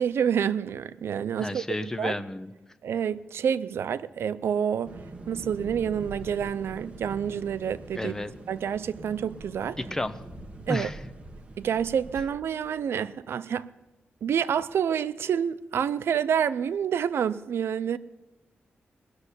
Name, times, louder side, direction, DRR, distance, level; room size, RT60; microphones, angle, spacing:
voice 1, 0.0-2.2 2.8-5.0 5.3-8.1 8.5-9.8 10.7-10.9 11.6-13.7 14.2-18.0, right 8 dB, 90° right, 15 dB, 0.6 m, -28 dB
voice 2, 1.4-2.5 8.0-8.3 9.8-10.2 10.7-11.0, left 1 dB, 15° left, 12 dB, 0.6 m, -31 dB
sound 1, 4.8-12.2, right 2 dB, 25° right, 1.3 m, -43 dB
19.5 x 6.8 x 9.8 m, 1.1 s
wide cardioid pair, 150°, 4 cm